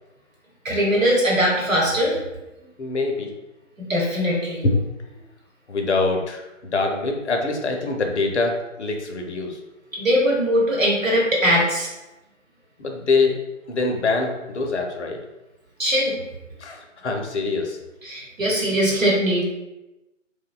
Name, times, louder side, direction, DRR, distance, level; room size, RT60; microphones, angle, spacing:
voice 1, 0.6-2.2 3.8-4.6 9.9-11.9 15.8-16.1 18.0-19.4, equal, 90° right, -4 dB, 1.0 m, -21 dB
voice 2, 2.8-3.3 4.6-4.8 5.7-9.6 12.8-13.4 13.7-15.2 16.6-17.8, left 3 dB, 60° left, 3 dB, 0.5 m, -24 dB
2.6 x 2.1 x 2.4 m, 1.0 s
figure-of-eight pair, 145°, 39 cm